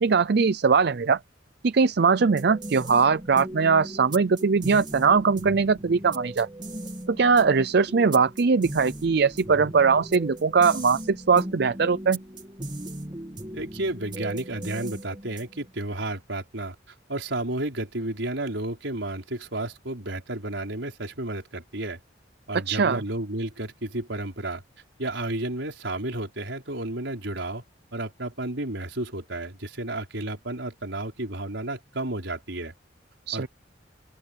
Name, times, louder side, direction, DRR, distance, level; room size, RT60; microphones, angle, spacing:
voice 1, 0.0-1.2 1.6-6.5 7.1-12.2 22.7-23.0 33.3-33.5, right 5 dB, 60° right, 0.5 m, -21 dB
sound 1, 2.2-15.7, right 1 dB, 25° right, 2.5 m, -38 dB
voice 2, 13.5-16.7 17.1-22.0 22.5-24.6 25.0-27.6 27.9-32.7 33.3-33.5, right 1 dB, 80° right, 4.7 m, -32 dB
open air
head